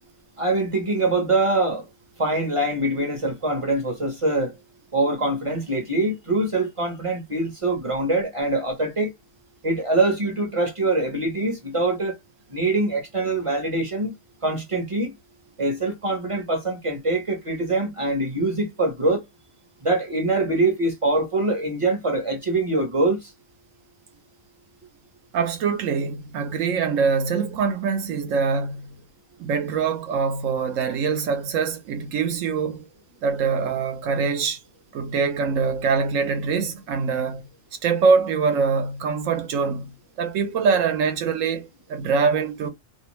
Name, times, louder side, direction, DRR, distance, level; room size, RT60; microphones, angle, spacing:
voice 1, 0.4-1.9 2.2-4.6 4.9-9.1 9.6-12.2 12.5-14.1 14.4-15.1 15.6-19.2 19.8-23.3, right 2 dB, 30° right, 0.6 m, -24 dB
voice 2, 25.3-28.9 29.4-32.9 33.2-34.6 34.9-37.5 37.8-42.7, right 5 dB, 70° right, 0.9 m, -24 dB
2.6 x 2.1 x 2.9 m
omnidirectional pair, 1.5 m